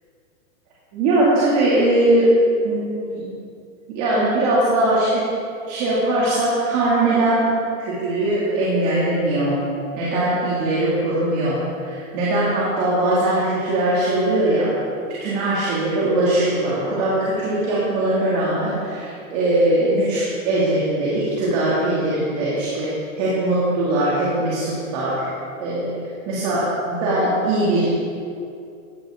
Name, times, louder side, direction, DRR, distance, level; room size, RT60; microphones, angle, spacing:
voice 1, 0.9-2.3 2.6-3.2 3.9-5.3 5.7-7.5 7.8-9.6 10.0-14.7 15.2-22.9 23.2-25.3 25.6-25.9 26.3-27.9, right 1 dB, 30° right, -8 dB, 2.8 m, -20 dB
16.5 x 13.5 x 3.9 m, 2.5 s
supercardioid pair, 175°, 42 cm